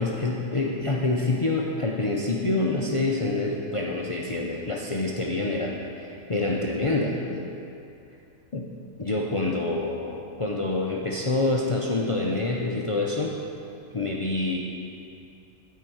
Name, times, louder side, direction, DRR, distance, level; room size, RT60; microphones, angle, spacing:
voice 1, 0.0-7.5 8.5-8.7 9.0-13.4 13.9-14.6, left 2 dB, 35° left, -2 dB, 0.5 m, -27 dB
10.0 x 4.6 x 7.7 m, 2.6 s
omnidirectional pair, 1.2 m